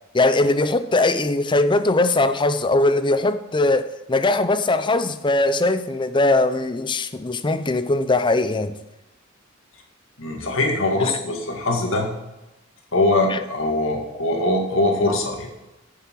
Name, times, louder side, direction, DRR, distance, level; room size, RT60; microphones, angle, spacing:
voice 1, 0.1-8.8 13.3-13.4, left 2 dB, 25° left, 11 dB, 0.6 m, -20 dB
voice 2, 10.2-12.1 12.9-15.5, left 2 dB, 75° left, 1 dB, 2.1 m, -22 dB
9.8 x 6.8 x 4.7 m, 0.98 s
head